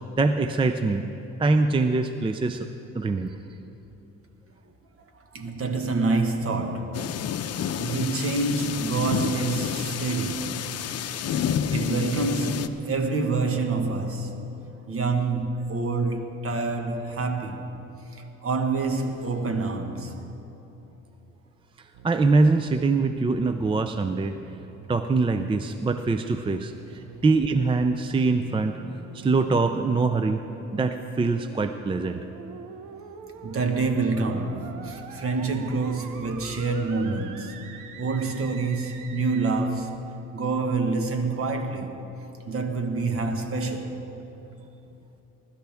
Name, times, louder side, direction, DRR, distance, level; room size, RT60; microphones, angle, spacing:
voice 1, 0.2-1.1 1.4-2.7 3.0-3.4 22.0-24.3 24.9-28.8 29.1-30.4 30.7-32.2, right 3 dB, 15° right, 0.4 m, -23 dB
voice 2, 5.3-7.1 7.8-10.6 11.7-14.4 14.9-17.7 18.4-20.1 33.4-37.6 38.0-40.0 40.3-41.9 42.5-44.1, right 3 dB, 50° right, 1.4 m, -27 dB
sound 1, 6.9-12.7, left 8 dB, 55° left, 0.7 m, -29 dB
sound 2, 21.9-39.5, right 6 dB, 90° right, 0.9 m, -45 dB
20.5 x 12.5 x 3.5 m
cardioid pair, 90°, 30 cm